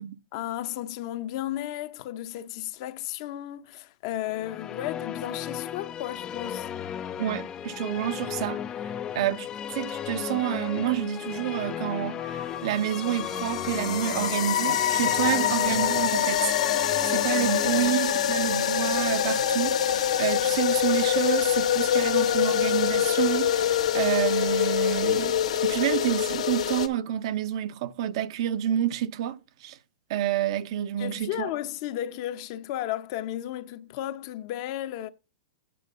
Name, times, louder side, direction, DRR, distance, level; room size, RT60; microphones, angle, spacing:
voice 1, 0.3-6.7 17.5-17.9 31.0-35.1, left 13 dB, 45° left, 0.7 m, -34 dB
Musical instrument, 4.2-19.7, left 9 dB, 20° left, 0.4 m, -36 dB
voice 2, 7.2-8.6 9.1-16.5 17.1-29.8 30.1-31.5, right 11 dB, 55° right, 0.7 m, -29 dB
sound 1, 12.2-26.9, left 10 dB, 85° left, 1.3 m, -25 dB
8.6 x 4.7 x 6.5 m
hypercardioid pair, 150°, 3 cm